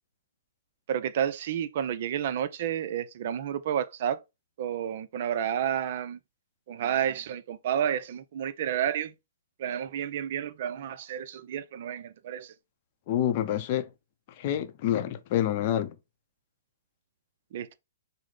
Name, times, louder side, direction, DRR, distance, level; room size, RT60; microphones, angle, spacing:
voice 1, 0.9-4.2 4.6-6.2 6.7-9.1 9.6-12.5 17.5-17.7, right 9 dB, 50° right, 0.4 m, -30 dB
voice 2, 13.1-13.9 14.4-15.9, left 11 dB, 40° left, 0.5 m, -27 dB
5.6 x 2.0 x 3.3 m
hypercardioid pair, 140°, 0 cm